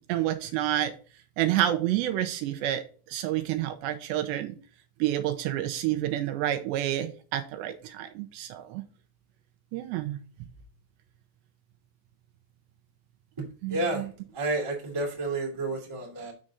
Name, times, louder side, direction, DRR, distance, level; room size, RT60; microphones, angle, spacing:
voice 1, 0.1-0.9 1.4-4.6 5.0-8.8 9.7-10.2 13.6-14.1, right 13 dB, 80° right, 8 dB, 2.8 m, -29 dB
voice 2, 13.4-14.1 14.3-16.3, right 2 dB, 10° right, -2 dB, 1.5 m, -31 dB
7.4 x 6.4 x 3.9 m, 0.39 s
omnidirectional pair, 5.3 m